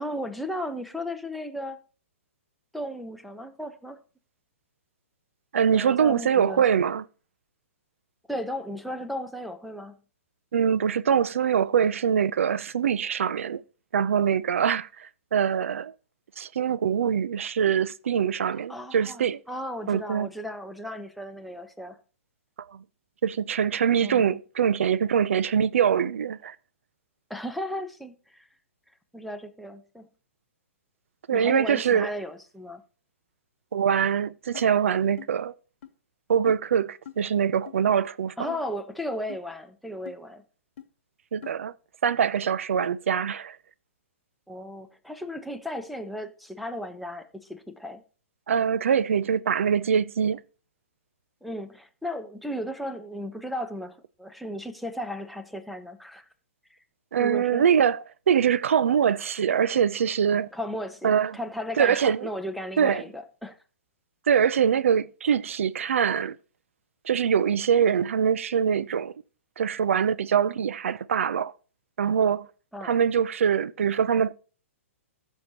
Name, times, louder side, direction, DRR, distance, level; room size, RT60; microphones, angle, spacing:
voice 1, 0.0-1.8 2.7-4.0 5.7-6.6 8.3-9.9 18.7-22.0 24.0-24.4 27.3-28.4 29.1-30.1 31.3-32.8 38.4-40.4 44.5-48.0 51.4-56.3 56.7-56.8 57.2-57.7 60.5-63.6 72.7-73.0, left 1 dB, ahead, 0.9 m, -35 dB
voice 2, 5.5-7.0 10.5-13.6 13.9-15.9 16.4-19.4 19.9-20.3 22.7-22.8 23.2-26.6 31.3-32.1 33.7-35.5 36.3-38.5 41.3-41.7 42.0-43.6 48.5-50.4 57.1-60.5 61.0-61.4 61.8-62.3 62.8-63.0 64.3-66.4 67.0-69.1 69.6-71.5 72.0-72.5 72.8-74.3, right 8 dB, 70° right, 0.5 m, -23 dB
sound 1, 34.5-34.7 35.2-35.3 35.8-35.9 36.5-36.6 37.1-37.2 37.7-37.8 38.5-38.6 39.3-39.4 40.1-40.2 40.8-40.9 41.4-41.6, left 10 dB, 55° left, 0.9 m, -42 dB
15.0 x 6.5 x 2.9 m
hypercardioid pair, 125°, 7 cm